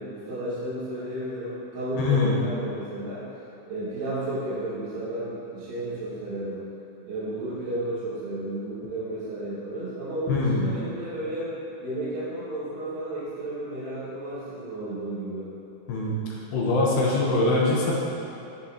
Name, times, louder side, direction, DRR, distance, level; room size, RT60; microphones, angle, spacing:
voice 1, 0.0-3.2 3.7-6.6 7.0-11.5 11.8-15.5, right 1 dB, 60° right, -13 dB, 3.0 m, -32 dB
voice 2, 1.9-2.4 10.3-10.6 15.9-17.9, left 2 dB, 75° left, -4 dB, 2.8 m, -23 dB
15.0 x 5.1 x 2.8 m, 2.9 s
omnidirectional pair, 5.3 m